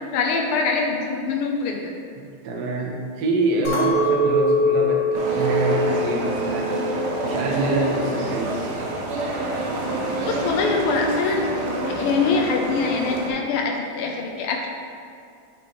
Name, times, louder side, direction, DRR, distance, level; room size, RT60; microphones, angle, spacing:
voice 1, 0.1-1.8 10.2-11.5 11.8-14.7, left 4 dB, 90° left, 1 dB, 1.5 m, -24 dB
voice 2, 2.2-6.8 7.2-8.6, right 2 dB, 60° right, -2 dB, 1.1 m, -25 dB
Chink clink, 3.6-8.0 8.4-9.0, left 1 dB, 65° left, 2.1 m, -24 dB
sound 1, 5.1-13.3, right 2 dB, 90° right, 1.7 m, -27 dB
8.3 x 4.6 x 3.1 m, 2.4 s
omnidirectional pair, 2.3 m